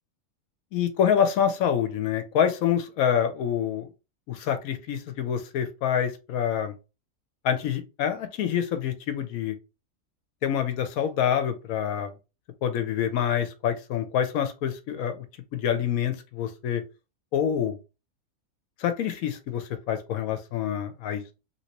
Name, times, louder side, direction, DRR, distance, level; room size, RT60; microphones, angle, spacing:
voice 1, 0.7-3.9 4.3-6.7 7.4-9.5 10.4-12.1 12.6-15.3 15.5-16.8 17.3-17.8 18.8-21.2, left 9 dB, 80° left, 1.0 m, -26 dB
3.0 x 2.8 x 2.9 m
omnidirectional pair, 1.5 m